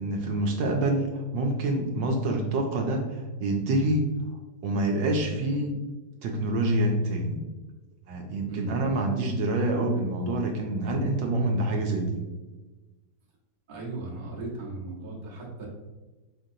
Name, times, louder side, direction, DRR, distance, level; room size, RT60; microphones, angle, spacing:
voice 1, 0.0-5.7 6.2-7.4 8.1-12.2, right 1 dB, 75° right, 1 dB, 1.3 m, -27 dB
voice 2, 13.7-15.7, right 2 dB, 30° right, -4 dB, 1.0 m, -37 dB
5.0 x 3.8 x 2.7 m, 1.2 s
omnidirectional pair, 2.0 m